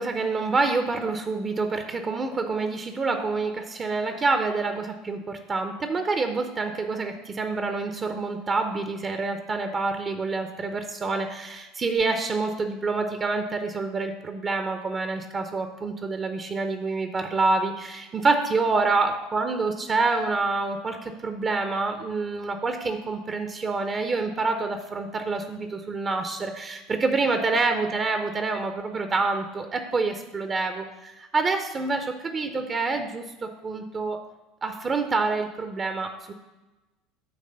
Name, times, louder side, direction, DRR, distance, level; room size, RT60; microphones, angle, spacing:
voice 1, 0.0-34.2 34.6-36.3, right 3 dB, 30° right, 6 dB, 0.6 m, -27 dB
9.5 x 3.3 x 6.4 m, 1.1 s
figure-of-eight pair, 70°, 0 cm